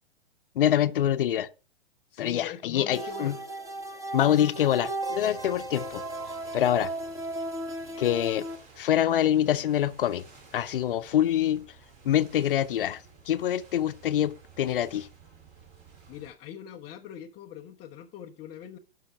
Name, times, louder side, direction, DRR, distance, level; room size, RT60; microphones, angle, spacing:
voice 1, 0.6-1.5 2.2-3.4 4.1-6.0 6.5-6.9 8.0-8.5 8.8-10.2 10.5-11.6 12.0-13.0 13.3-15.1, left 11 dB, 55° left, 0.7 m, -25 dB
voice 2, 2.1-3.4 16.1-18.8, left 9 dB, 20° left, 0.5 m, -42 dB
sound 1, 2.9-8.6, right 1 dB, 10° right, 1.0 m, -35 dB
sound 2, 5.1-16.3, right 5 dB, 40° right, 4.0 m, -54 dB
11.0 x 5.6 x 4.6 m
figure-of-eight pair, 115°, 33 cm